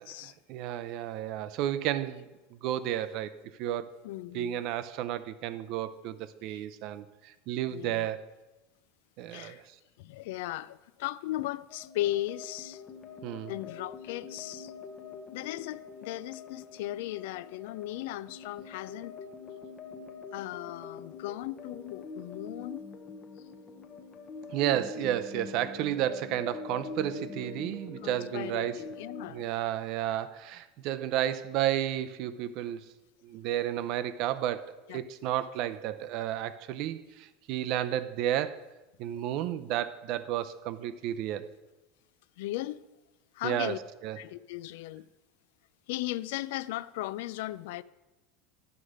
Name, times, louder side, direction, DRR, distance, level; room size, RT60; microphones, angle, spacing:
voice 1, 0.0-2.2 2.6-3.3 3.6-3.9 4.3-8.2 9.2-9.6 13.2-13.5 24.5-28.8 29.3-32.9 33.2-38.6 39.0-41.5 43.4-44.2, right 12 dB, 45° right, 0.5 m, -32 dB
voice 2, 4.0-4.6 6.5-6.6 7.7-8.1 9.3-9.6 10.0-12.8 13.5-14.7 15.3-19.2 20.3-22.8 28.0-29.5 34.9-35.0 42.4-42.9 43.3-43.8 44.2-45.0 45.9-47.8, left 15 dB, 65° left, 0.3 m, -37 dB
sound 1, 11.7-29.3, left 4 dB, 20° left, 0.8 m, -44 dB
11.5 x 4.9 x 6.4 m
supercardioid pair, 165°, 0 cm